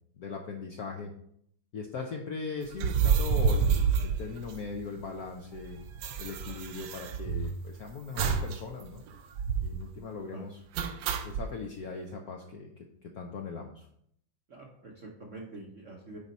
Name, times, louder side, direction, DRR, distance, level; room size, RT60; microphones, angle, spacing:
voice 1, 0.2-1.1 1.7-5.8 6.2-9.2 9.6-10.6 11.2-12.7 13.0-13.9, left 4 dB, 70° left, 2 dB, 0.9 m, -39 dB
sound 1, 2.7-5.0 5.3-5.4 5.6-7.7 8.2-8.6 8.9-9.0 9.4-9.8 10.8-11.5, right 6 dB, 70° right, 1.3 m, -28 dB
voice 2, 14.5-16.2, right 2 dB, 55° right, -1 dB, 0.9 m, -45 dB
9.3 x 4.0 x 4.2 m, 0.69 s
omnidirectional pair, 2.4 m